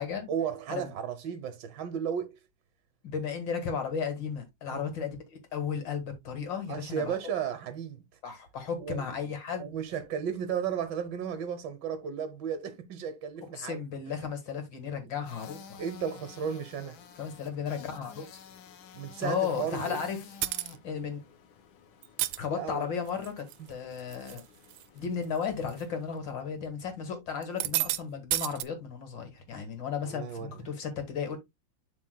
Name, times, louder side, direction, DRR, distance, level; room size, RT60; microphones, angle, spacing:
voice 1, 0.3-2.4 4.7-4.8 6.7-8.0 8.8-9.0 9.6-14.1 15.8-17.0 18.9-20.1 22.5-22.9 23.6-23.7 30.0-30.6, right 8 dB, 65° right, 1.5 m, -34 dB
voice 2, 3.0-7.1 8.2-9.7 13.5-15.8 17.2-18.4 19.2-20.2 20.5-21.2 22.4-24.4 24.9-31.4, left 6 dB, 70° left, 2.4 m, -34 dB
sound 1, 15.2-26.2, left 7 dB, 85° left, 1.7 m, -52 dB
sound 2, 20.4-20.8 22.0-22.4 23.1-23.5 24.0-24.4 24.7-24.8 25.7-25.8 27.4-28.0 28.3-28.6, right 15 dB, 90° right, 1.4 m, -30 dB
11.5 x 4.4 x 2.2 m
omnidirectional pair, 2.2 m